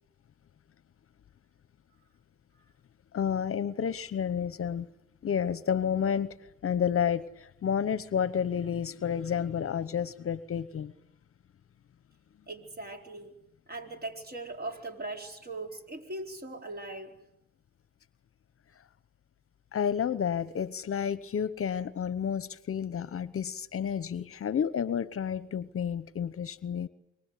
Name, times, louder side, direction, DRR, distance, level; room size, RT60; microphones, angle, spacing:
voice 1, 3.1-4.9 5.2-6.3 6.6-10.9 19.7-26.9, left 8 dB, 45° left, 15 dB, 1.0 m, -30 dB
voice 2, 12.5-13.3 13.7-17.1, right 2 dB, 30° right, 3 dB, 4.6 m, -40 dB
25.5 x 23.5 x 8.4 m, 0.85 s
cardioid pair, 90°, 30 cm